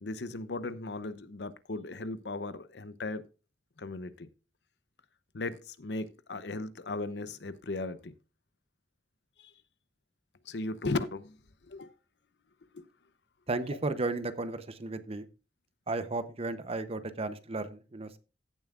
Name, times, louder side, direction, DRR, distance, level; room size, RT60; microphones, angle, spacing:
voice 1, 0.0-3.2 3.8-4.3 5.3-8.1 9.4-9.5 10.5-11.4 11.7-11.9 12.7-12.8, left 2 dB, 75° left, 0.8 m, -37 dB
voice 2, 13.5-15.3 15.9-18.2, right 2 dB, 35° right, 0.8 m, -34 dB
15.5 x 7.1 x 2.4 m
head